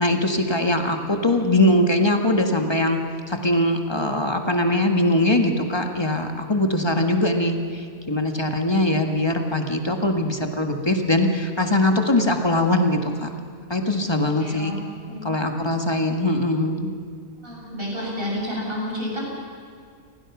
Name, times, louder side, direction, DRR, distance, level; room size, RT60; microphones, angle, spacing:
voice 1, 0.0-3.0 3.3-13.3 13.7-14.8 15.2-16.9, left 1 dB, 20° left, 4 dB, 1.6 m, -21 dB
voice 2, 14.4-14.8 15.1-15.2 17.4-19.2, left 1 dB, 40° right, -2 dB, 6.6 m, -30 dB
29.0 x 19.5 x 6.1 m, 2.2 s
omnidirectional pair, 1.5 m